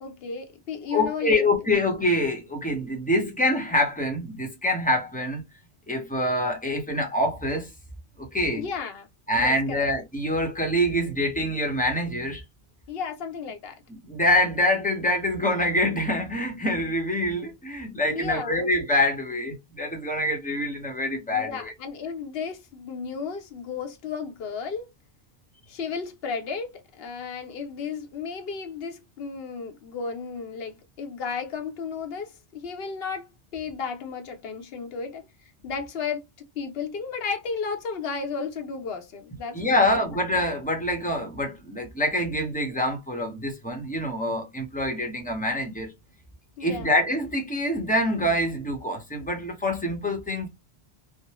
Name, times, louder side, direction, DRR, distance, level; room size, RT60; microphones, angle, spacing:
voice 1, 0.0-1.5 8.5-9.1 9.3-9.9 12.9-13.8 18.0-18.7 21.3-24.9 25.7-35.3 35.6-36.2 36.6-39.8 46.6-46.9, left 5 dB, 65° left, 0.9 m, -33 dB
voice 2, 0.9-5.4 5.9-7.7 8.2-8.6 9.3-12.4 14.0-21.7 39.5-45.9 46.6-50.5, left 1 dB, 10° left, 0.7 m, -25 dB
3.2 x 2.1 x 2.9 m
omnidirectional pair, 1.1 m